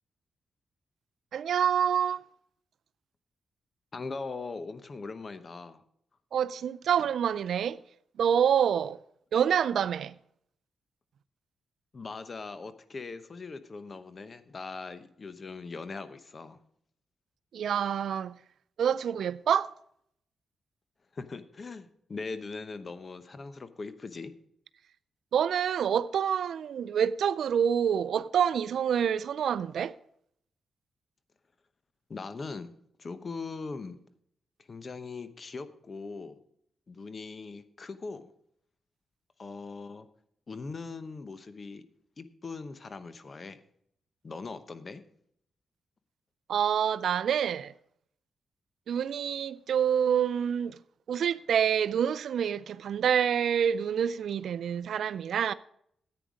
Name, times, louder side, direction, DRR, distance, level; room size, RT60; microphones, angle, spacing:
voice 1, 1.3-2.2 6.3-7.8 8.2-9.0 9.3-10.1 17.5-18.3 18.8-19.7 25.3-29.9 46.5-47.7 48.9-50.8 51.1-55.5, right 8 dB, 75° right, 0.4 m, -27 dB
voice 2, 3.9-5.8 11.9-16.6 21.1-24.3 32.1-32.7 33.0-34.0 34.7-36.4 36.9-38.3 39.4-40.1 40.5-41.8 42.2-43.6 44.2-45.0, left 4 dB, 40° left, 0.9 m, -40 dB
10.0 x 9.0 x 5.0 m
cardioid pair, 80°, 0 cm